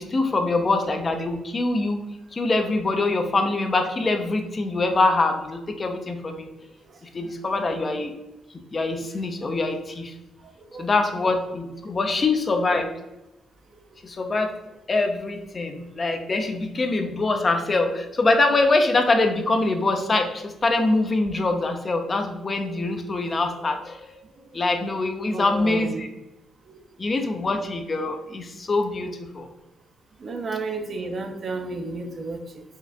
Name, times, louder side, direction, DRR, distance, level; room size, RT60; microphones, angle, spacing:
voice 1, 0.0-2.0 2.3-6.5 7.1-8.1 8.7-10.1 10.8-12.9 14.0-14.5 14.9-24.2 24.5-26.1 27.0-29.5, left 2 dB, 35° left, 6 dB, 0.6 m, -24 dB
voice 2, 7.2-7.6 10.4-10.9 25.3-26.0 26.6-26.8 30.2-32.6, right 3 dB, 45° right, 5 dB, 0.6 m, -33 dB
4.5 x 2.5 x 3.4 m, 0.98 s
cardioid pair, 90°, 0 cm